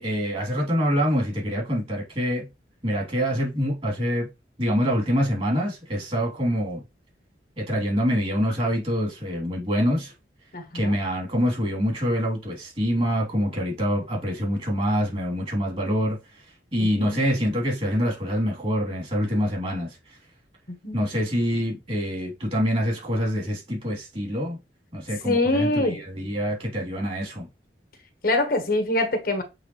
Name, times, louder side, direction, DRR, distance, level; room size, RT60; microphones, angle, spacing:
voice 1, 0.0-2.5 2.8-4.3 4.6-6.8 7.6-10.1 10.7-16.4 16.7-20.2 20.9-24.6 24.9-27.5, equal, 30° right, 3.2 m, -25 dB
voice 2, 10.5-10.9 16.8-17.2 20.7-21.0 25.2-26.0 28.2-29.4, left 2 dB, 55° left, 1.3 m, -24 dB
7.9 x 3.7 x 3.2 m
head